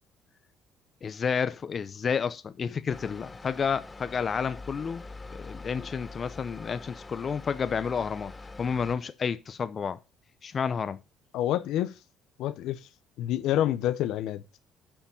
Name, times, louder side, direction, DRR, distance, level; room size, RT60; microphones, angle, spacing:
voice 1, 1.0-5.0 5.3-8.3 8.6-10.0 10.4-11.0, left 6 dB, 40° left, 0.7 m, -30 dB
sound 1, 2.9-9.0, left 3 dB, 20° left, 2.4 m, -44 dB
voice 2, 11.3-11.9 12.4-12.8 13.2-14.4, left 12 dB, 75° left, 0.8 m, -27 dB
8.6 x 5.8 x 5.5 m
supercardioid pair, 75°, 0 cm